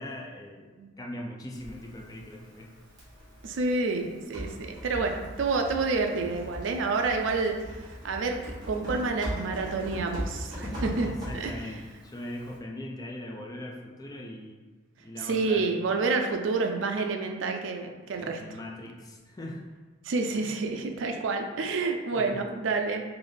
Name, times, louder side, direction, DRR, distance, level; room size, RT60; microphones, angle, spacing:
voice 1, 0.0-0.7 1.0-2.8 11.1-14.6 15.0-15.7 16.0-16.1 18.2-19.6 22.1-22.4, left 1 dB, 20° left, -1 dB, 0.4 m, -40 dB
Typing, 1.5-12.6, equal, 20° right, 1.2 m, -40 dB
voice 2, 3.4-11.1 11.3-11.5 15.2-18.4 20.0-23.0, right 3 dB, 70° right, 4 dB, 0.4 m, -29 dB
3.3 x 2.5 x 3.9 m, 1.4 s
head